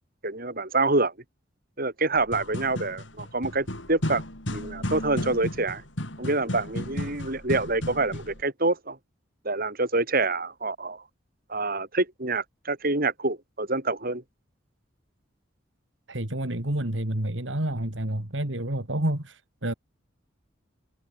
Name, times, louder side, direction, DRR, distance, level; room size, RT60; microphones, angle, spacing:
voice 1, 0.2-1.1 1.8-4.2 4.5-5.8 6.2-9.0 9.4-11.0 11.5-14.2, right 2 dB, 50° right, 6.4 m, -26 dB
sound 1, 2.2-8.4, left 1 dB, 75° left, 6.2 m, -34 dB
voice 2, 16.1-19.7, right 1 dB, 75° right, 2.9 m, -29 dB
head